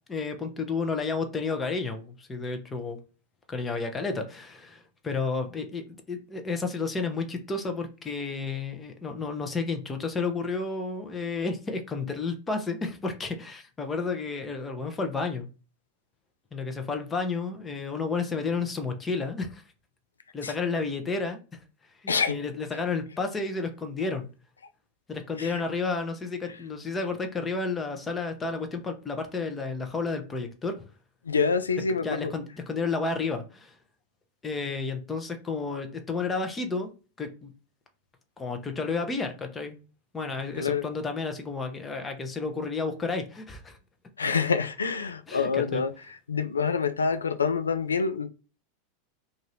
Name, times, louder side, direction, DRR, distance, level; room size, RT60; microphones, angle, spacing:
voice 1, 0.1-3.0 3.5-15.5 16.5-19.6 20.3-21.6 22.0-24.3 25.1-30.7 32.0-33.8 34.4-36.9 37.2-37.5 38.4-39.8 40.1-43.8 45.3-45.8, left 4 dB, 20° left, 0.8 m, -31 dB
voice 2, 22.1-22.4 25.4-25.6 31.2-32.3 40.6-40.9 44.2-45.9 46.3-48.3, left 5 dB, 85° left, 0.3 m, -26 dB
2.6 x 2.6 x 3.2 m
figure-of-eight pair, 90°, 0 cm